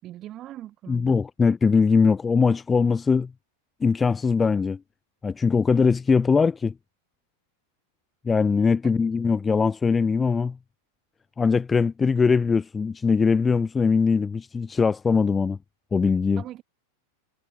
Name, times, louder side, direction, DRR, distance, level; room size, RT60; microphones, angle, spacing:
voice 1, 0.0-1.2 8.8-8.9 16.4-16.6, right 13 dB, 35° right, 5.8 m, -40 dB
voice 2, 0.9-3.3 3.8-4.8 5.2-6.7 8.2-10.6 11.4-15.6 15.9-16.4, left 5 dB, 15° left, 1.0 m, -21 dB
figure-of-eight pair, 90°, 0 cm